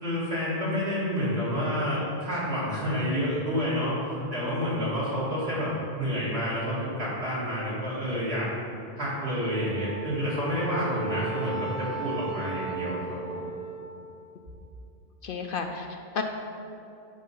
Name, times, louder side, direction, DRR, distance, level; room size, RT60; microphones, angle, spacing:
voice 1, 0.0-4.0 4.3-8.5 9.0-13.3, equal, 70° right, -8 dB, 2.6 m, -29 dB
Wind instrument woodwind instrument, 9.5-13.9, right 5 dB, 40° right, 1.3 m, -36 dB
voice 2, 15.2-16.2, left 5 dB, 60° left, 5 dB, 0.7 m, -32 dB
10.0 x 4.3 x 5.5 m, 2.7 s
omnidirectional pair, 1.1 m